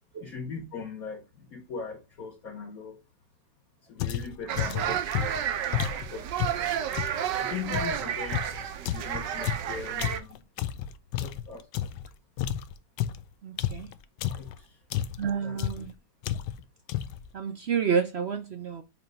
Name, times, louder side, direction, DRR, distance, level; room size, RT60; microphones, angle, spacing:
voice 1, 0.2-3.0 3.9-5.0 6.1-6.7 7.4-10.4 11.2-11.6 13.7-13.8 14.3-14.7 15.4-15.6, left 5 dB, 60° left, 1.5 m, -40 dB
sound 1, 4.0-7.2 7.7-12.1 12.4-14.6 14.9-15.3 15.6-15.9 16.2-16.6 16.9-17.3, left 11 dB, 90° left, 1.2 m, -32 dB
voice 2, 4.5-4.9 13.4-13.9 15.2-15.9 17.3-18.8, right 6 dB, 65° right, 0.6 m, -30 dB
sound 2, 4.5-10.2, right 9 dB, 85° right, 1.4 m, -31 dB
8.0 x 3.0 x 5.2 m
omnidirectional pair, 1.8 m